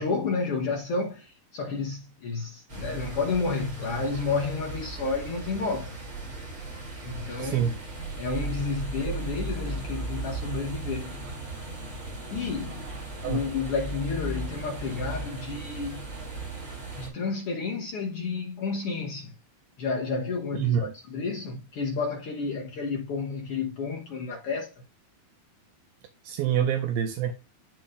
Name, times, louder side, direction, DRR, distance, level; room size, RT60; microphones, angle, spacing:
voice 1, 0.0-5.9 7.0-7.7 8.2-11.2 12.3-12.9 13.2-16.0 16.9-19.3 19.8-24.7, left 4 dB, 90° left, 1.2 m, -31 dB
sound 1, 2.7-17.1, right 2 dB, 30° right, 3.4 m, -37 dB
voice 2, 7.4-7.8 13.2-13.4 20.5-20.9 26.2-27.3, right 9 dB, 80° right, 2.5 m, -26 dB
12.0 x 4.4 x 2.5 m
omnidirectional pair, 4.3 m